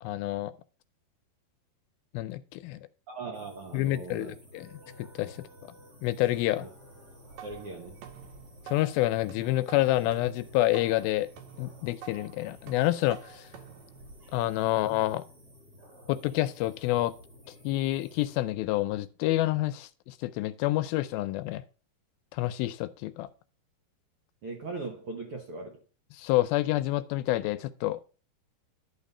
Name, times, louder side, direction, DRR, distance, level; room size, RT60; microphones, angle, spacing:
voice 1, 0.0-0.5 2.1-2.8 3.7-5.4 6.0-6.7 8.7-11.3 11.6-13.5 14.3-15.2 16.1-17.2 17.6-21.6 22.3-23.3 26.1-28.0, left 16 dB, 80° left, 2.3 m, -28 dB
voice 2, 3.1-4.3 6.6-6.7 7.4-8.1 24.4-25.8, right 3 dB, 85° right, 1.2 m, -39 dB
sound 1, 3.3-18.4, left 1 dB, 35° right, 1.8 m, -54 dB
sound 2, 7.0-14.8, right 8 dB, 70° right, 2.4 m, -49 dB
11.0 x 4.1 x 5.3 m
omnidirectional pair, 4.5 m